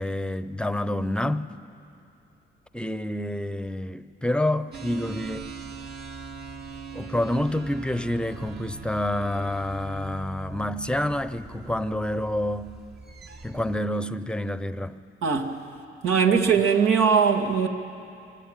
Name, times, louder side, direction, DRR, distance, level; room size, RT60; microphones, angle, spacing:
voice 1, 0.0-1.5 2.7-5.5 6.9-12.7 13.4-15.0, left 1 dB, 5° left, 0.8 m, -28 dB
sound 1, 4.7-13.8, right 4 dB, 55° right, 2.3 m, -41 dB
voice 2, 15.2-15.6 16.0-17.7, right 6 dB, 80° right, 2.2 m, -20 dB
25.5 x 23.5 x 9.1 m
cardioid pair, 90°, 20 cm